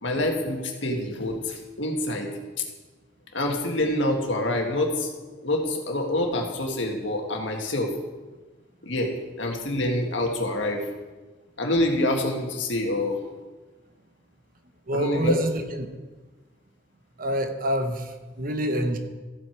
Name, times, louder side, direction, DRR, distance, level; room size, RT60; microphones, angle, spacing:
voice 1, 0.0-2.3 3.3-5.1 5.4-7.9 8.8-9.1 9.4-10.8 11.6-13.2 14.9-15.3, left 1 dB, 70° left, 2 dB, 1.8 m, -26 dB
voice 2, 14.9-15.9 17.2-19.0, right 1 dB, 50° right, 7 dB, 1.0 m, -27 dB
14.5 x 7.9 x 4.6 m, 1.3 s
head